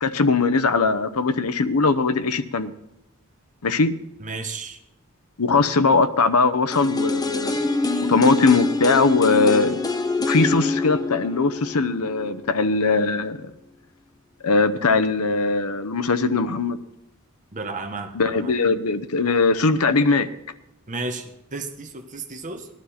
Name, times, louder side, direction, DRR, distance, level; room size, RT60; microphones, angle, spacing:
voice 1, 0.0-2.7 3.6-3.9 5.4-7.6 8.1-9.8 10.3-13.5 14.4-16.8 18.1-20.3, left 4 dB, 85° left, 11 dB, 0.8 m, -20 dB
voice 2, 4.2-4.8 17.5-18.5 20.9-22.7, right 3 dB, 35° right, 5 dB, 1.1 m, -33 dB
sound 1, 6.7-12.6 12.9-13.0, left 3 dB, 15° left, 0.7 m, -25 dB
18.0 x 12.0 x 4.3 m, 0.88 s
head